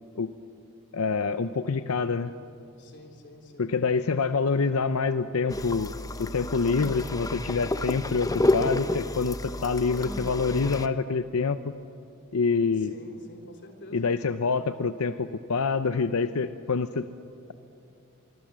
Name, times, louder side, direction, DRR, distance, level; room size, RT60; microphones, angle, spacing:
voice 1, 0.9-2.3 3.6-5.9 6.2-11.6 12.3-12.9 13.9-17.1, left 4 dB, 80° left, 11 dB, 0.7 m, -26 dB
voice 2, 2.8-3.7 12.8-14.1, left 1 dB, 55° left, 3 dB, 3.3 m, -49 dB
sound 1, 5.5-10.9, left 2 dB, 15° left, 0.7 m, -30 dB
25.0 x 24.5 x 7.6 m, 2.7 s
head